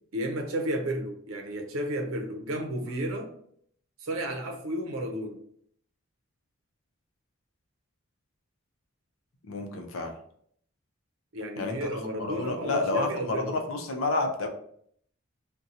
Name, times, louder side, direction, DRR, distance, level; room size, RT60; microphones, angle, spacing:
voice 1, 0.1-3.3 4.0-5.4 11.3-13.6, right 1 dB, 85° right, 0.6 m, -32 dB
voice 2, 9.5-10.1 11.6-11.9 12.2-14.5, left 3 dB, 85° left, 0.5 m, -29 dB
2.7 x 2.2 x 3.7 m
head